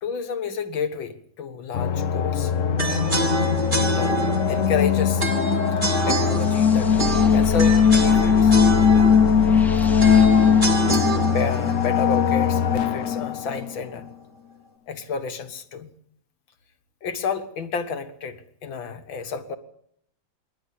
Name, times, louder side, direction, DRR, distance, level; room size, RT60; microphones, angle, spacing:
voice 1, 0.0-2.5 3.8-5.3 6.1-8.6 10.9-14.1 14.9-15.9 17.0-19.6, left 5 dB, 90° left, 2.3 m, -30 dB
sound 1, 1.7-13.7, left 7 dB, 50° left, 1.1 m, -20 dB
sound 2, 2.8-12.9, right 2 dB, 25° right, 2.7 m, -28 dB
sound 3, 6.3-11.6, left 1 dB, ahead, 1.4 m, -32 dB
26.5 x 12.0 x 8.5 m
omnidirectional pair, 2.1 m